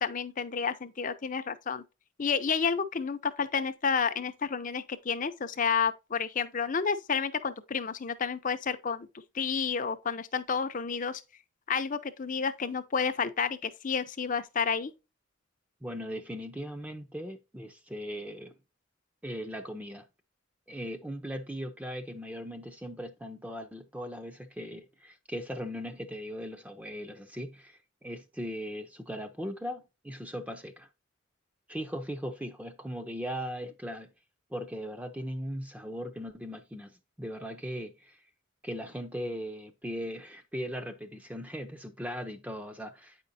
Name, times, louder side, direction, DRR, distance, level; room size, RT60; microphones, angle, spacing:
voice 1, 0.0-1.8 2.2-9.1 9.3-11.2 11.7-14.9, left 6 dB, 40° left, 0.6 m, -30 dB
voice 2, 15.8-18.5 19.2-20.0 20.7-30.9 31.7-34.1 34.5-38.2 38.6-43.2, equal, 5° right, 0.6 m, -38 dB
9.0 x 5.1 x 2.7 m
head